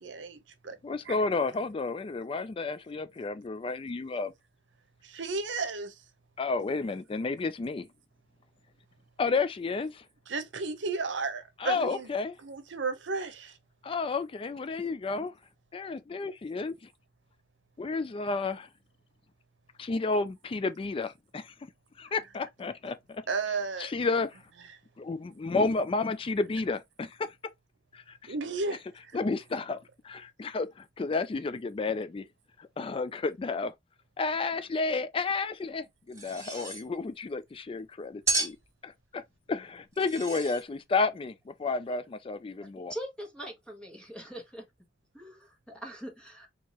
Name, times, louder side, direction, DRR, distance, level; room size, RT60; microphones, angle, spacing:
voice 1, 0.0-0.8 1.0-1.2 5.0-6.0 10.3-12.1 12.4-13.6 23.3-23.9 28.3-29.2, right 4 dB, 80° right, 0.8 m, -33 dB
voice 2, 0.8-4.3 6.4-7.9 9.2-10.0 11.6-12.3 13.8-15.3 15.7-16.8 17.8-18.7 19.8-21.5 22.0-23.2 23.8-24.4 25.0-27.3 27.9-28.3 29.1-29.8 30.0-32.3 32.6-33.7 34.2-38.6 38.8-39.2 39.5-42.9, left 3 dB, 30° left, 0.3 m, -31 dB
sound 1, 36.1-36.9 38.3-38.6 39.9-40.6, right 3 dB, 15° right, 1.6 m, -32 dB
voice 3, 42.9-44.6 45.1-46.5, right 1 dB, 5° left, 1.5 m, -42 dB
4.5 x 2.9 x 2.9 m
head